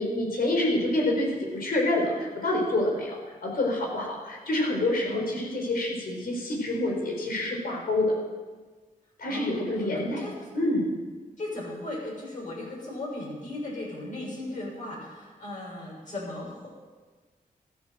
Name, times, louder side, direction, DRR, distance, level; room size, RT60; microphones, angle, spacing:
voice 1, 0.0-8.2 9.2-10.3 10.5-10.9, left 1 dB, 85° left, 0 dB, 4.6 m, -27 dB
voice 2, 9.3-10.5 11.4-16.7, left 2 dB, 60° left, -4 dB, 6.7 m, -37 dB
13.5 x 13.5 x 7.6 m, 1.4 s
wide cardioid pair, 95°, 15 cm